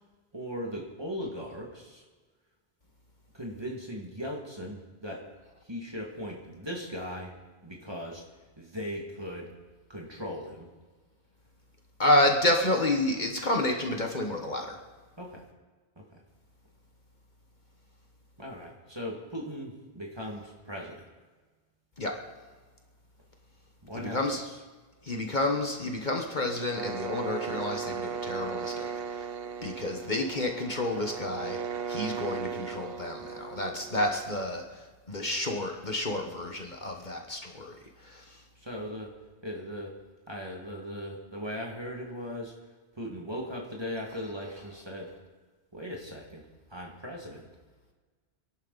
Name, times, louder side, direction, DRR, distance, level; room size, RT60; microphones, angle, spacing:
voice 1, 0.3-2.0 3.3-5.3 5.6-7.3 7.6-8.3 8.6-9.5 9.9-10.7 15.2-15.4 16.0-16.2 18.4-21.1 23.9-24.2 38.6-39.1 39.4-40.0 40.3-42.5 43.0-45.1 45.7-47.5, equal, 25° right, -1 dB, 2.3 m, -38 dB
voice 2, 12.0-14.8 22.0-22.1 23.9-24.4 25.0-29.3 29.6-31.6 31.9-38.4, left 1 dB, 45° left, 2 dB, 1.5 m, -30 dB
sound 1, 26.7-34.4, right 6 dB, 65° right, 0.9 m, -37 dB
25.5 x 12.0 x 4.1 m, 1.4 s
omnidirectional pair, 1.1 m